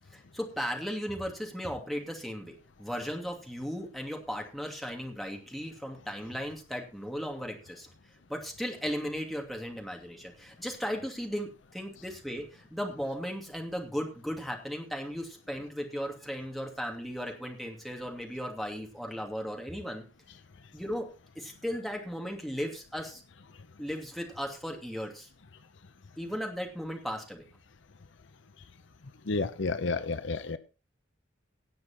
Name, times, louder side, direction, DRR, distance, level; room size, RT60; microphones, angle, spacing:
voice 1, 0.1-7.9 8.3-20.0 20.7-21.1 21.4-23.2 23.8-25.3 26.2-27.4, equal, ahead, 2.6 m, -36 dB
voice 2, 29.3-30.6, left 3 dB, 65° left, 0.8 m, -30 dB
18.0 x 6.6 x 4.4 m
head